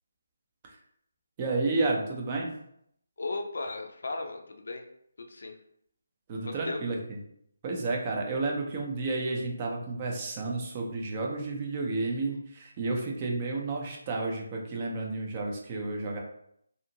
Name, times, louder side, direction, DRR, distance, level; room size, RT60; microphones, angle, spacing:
voice 1, 1.4-2.5 6.3-7.2 7.6-16.2, right 3 dB, 25° right, 0 dB, 0.5 m, -31 dB
voice 2, 3.2-4.8 5.2-5.5 6.5-6.8, left 3 dB, 65° left, 4 dB, 0.4 m, -36 dB
2.6 x 2.4 x 2.8 m, 0.71 s
figure-of-eight pair, 165°, 0 cm